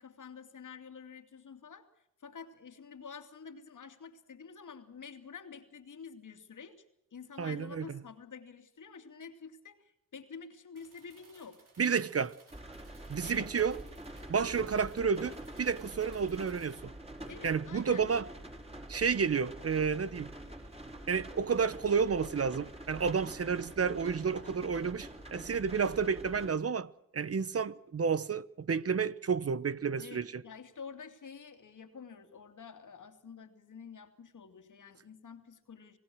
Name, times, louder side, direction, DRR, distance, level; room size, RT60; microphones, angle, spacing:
voice 1, 0.0-6.8 7.1-11.6 13.2-13.5 17.3-18.1 30.0-36.0, left 6 dB, 60° left, 2.7 m, -49 dB
voice 2, 7.4-7.8 11.8-12.3 13.1-13.8 14.3-16.9 17.4-18.2 18.9-20.3 21.1-30.4, right 6 dB, 45° right, 0.9 m, -31 dB
sound 1, 10.8-16.8, right 4 dB, 65° right, 7.2 m, -62 dB
sound 2, 12.5-26.5, right 1 dB, 15° right, 5.1 m, -46 dB
27.5 x 17.5 x 6.3 m
cardioid pair, 65°, 34 cm